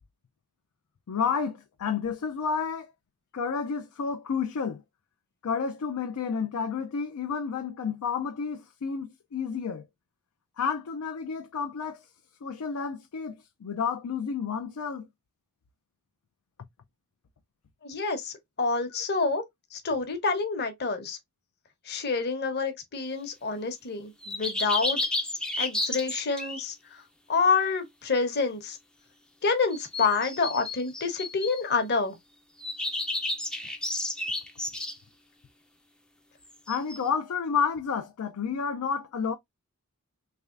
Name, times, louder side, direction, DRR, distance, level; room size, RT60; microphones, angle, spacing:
voice 1, 1.1-2.9 3.3-4.8 5.4-9.9 10.6-12.1 12.4-15.1 36.7-39.3, left 6 dB, 75° left, 0.4 m, -30 dB
voice 2, 17.8-19.4 19.7-21.2 21.9-25.0 25.6-26.7 27.3-28.8 29.4-32.1, left 4 dB, 50° left, 1.0 m, -27 dB
sound 1, 24.2-26.6 29.7-31.6 32.6-34.9 36.7-37.0, left 2 dB, 5° left, 0.4 m, -32 dB
3.4 x 3.2 x 2.4 m
head